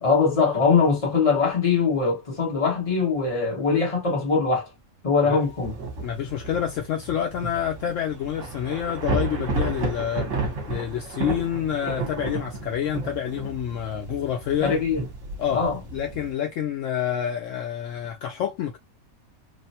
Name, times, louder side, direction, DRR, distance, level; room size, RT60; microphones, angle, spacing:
voice 1, 0.0-4.7 5.0-5.7 14.6-15.0 15.5-15.8, left 5 dB, 25° left, 1.1 m, -22 dB
Thunder / Rain, 5.4-16.3, right 3 dB, 65° right, 1.2 m, -32 dB
voice 2, 6.0-14.8 15.4-15.6 15.9-18.8, left 9 dB, 70° left, 0.9 m, -28 dB
3.3 x 2.0 x 2.8 m
omnidirectional pair, 1.5 m